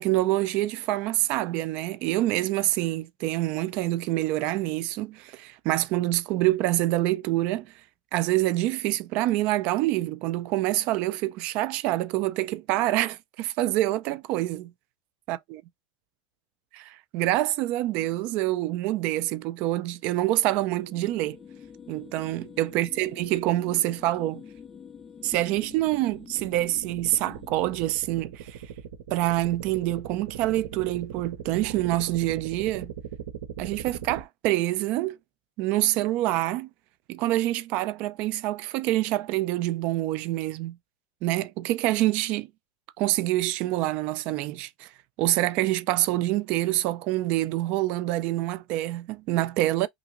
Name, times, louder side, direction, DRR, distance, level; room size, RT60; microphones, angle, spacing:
voice 1, 0.0-7.7 8.1-14.7 15.3-15.6 16.7-21.4 21.9-24.4 25.2-28.6 29.1-32.9 33.6-35.2 35.6-36.7 37.1-40.8 41.2-42.5 43.0-44.9 45.2-49.9, right 16 dB, 45° right, 0.4 m, -26 dB
sound 1, 19.9-27.5, left 7 dB, 15° left, 0.5 m, -47 dB
sound 2, 25.4-34.2, right 8 dB, 80° right, 0.9 m, -40 dB
5.7 x 2.6 x 2.5 m
supercardioid pair, 160°, 3 cm